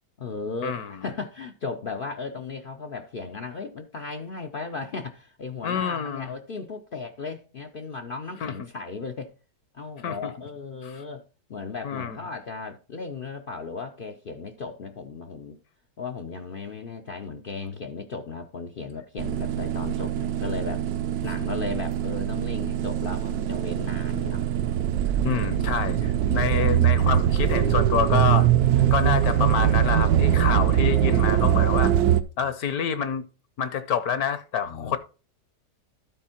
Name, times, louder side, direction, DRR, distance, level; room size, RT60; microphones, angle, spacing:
voice 1, 0.2-9.3 9.7-11.2 11.5-15.6 16.0-20.8 21.2-24.4 25.8-26.7 28.7-28.9 32.4-32.5 34.6-35.0, left 4 dB, 90° left, 0.4 m, -36 dB
voice 2, 5.6-6.3 8.4-8.5 10.0-10.2 10.8-11.0 11.8-12.2 25.2-28.5 28.9-31.9 32.4-33.2 33.6-35.0, left 7 dB, 70° left, 1.1 m, -27 dB
sound 1, 19.2-32.2, right 11 dB, 70° right, 1.0 m, -22 dB
12.5 x 4.3 x 4.3 m
omnidirectional pair, 1.8 m